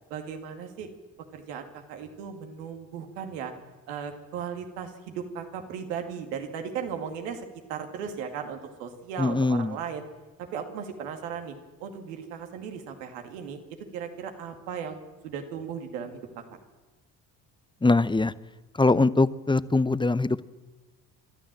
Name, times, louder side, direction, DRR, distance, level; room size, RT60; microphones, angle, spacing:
voice 1, 0.1-0.9 1.3-3.5 3.9-10.0 10.5-11.5 11.8-13.6 13.9-15.0 15.2-16.4, right 7 dB, 80° right, 5 dB, 2.4 m, -36 dB
voice 2, 9.2-9.8 17.8-18.3 18.8-20.4, left 3 dB, 10° left, 16 dB, 0.8 m, -22 dB
29.0 x 13.0 x 7.6 m, 1.2 s
hypercardioid pair, 50°, 49 cm